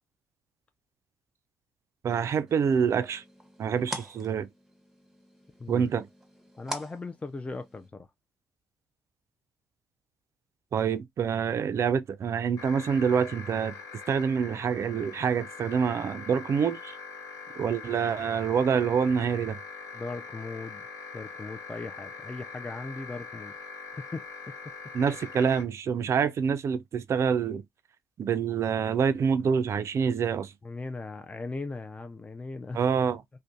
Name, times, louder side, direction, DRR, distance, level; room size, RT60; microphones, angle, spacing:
voice 1, 2.0-3.2 3.6-4.5 5.7-6.1 10.7-13.7 14.1-16.9 17.6-19.6 24.9-27.6 28.2-30.5 32.7-33.2, right 6 dB, 45° right, 0.4 m, -26 dB
sound 1, 2.5-7.9, right 1 dB, 5° right, 0.7 m, -44 dB
voice 2, 6.6-8.1 19.9-20.8 21.1-23.5 24.1-24.2 30.6-32.8, left 3 dB, 20° left, 0.4 m, -38 dB
sound 2, 12.6-25.6, left 5 dB, 70° left, 0.6 m, -43 dB
2.5 x 2.1 x 2.4 m
hypercardioid pair, 50°, 6 cm